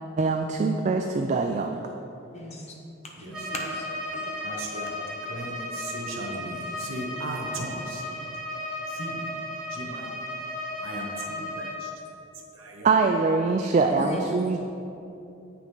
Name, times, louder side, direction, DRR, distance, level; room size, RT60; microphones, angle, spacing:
voice 1, 0.2-1.9 12.8-14.6, right 4 dB, 35° right, 4 dB, 0.3 m, -23 dB
voice 2, 2.3-2.8 3.2-3.9 4.1-4.7 14.0-14.5, equal, 35° left, -1 dB, 1.0 m, -36 dB
voice 3, 3.2-3.5 4.4-8.1 8.9-9.3 9.7-10.2 10.8-11.9 12.5-12.9, right 1 dB, 85° right, 1 dB, 1.1 m, -37 dB
Bowed string instrument, 3.3-11.9, left 1 dB, 5° right, 1.2 m, -35 dB
8.4 x 5.9 x 3.8 m, 2.8 s
head